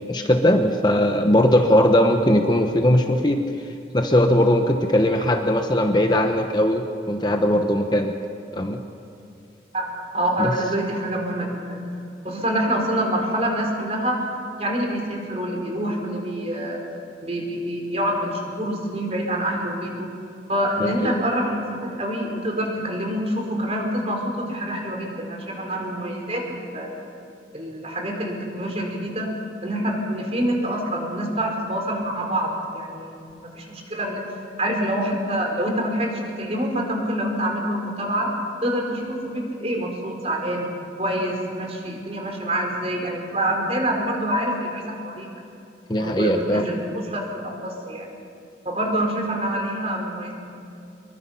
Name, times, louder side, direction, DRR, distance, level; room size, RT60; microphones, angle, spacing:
voice 1, 0.1-3.4 3.9-8.1 8.5-8.8 10.4-10.5 20.8-21.1 45.9-46.6, left 1 dB, 25° left, 4 dB, 1.1 m, -19 dB
voice 2, 9.7-11.8 12.2-14.3 14.6-16.8 17.2-20.1 20.5-26.9 27.5-29.3 29.6-34.2 34.6-38.3 38.6-40.7 41.0-45.3 45.9-46.8 47.1-48.1 48.6-50.3, right 1 dB, 35° right, 1 dB, 4.4 m, -26 dB
24.5 x 23.0 x 5.8 m, 2.6 s
head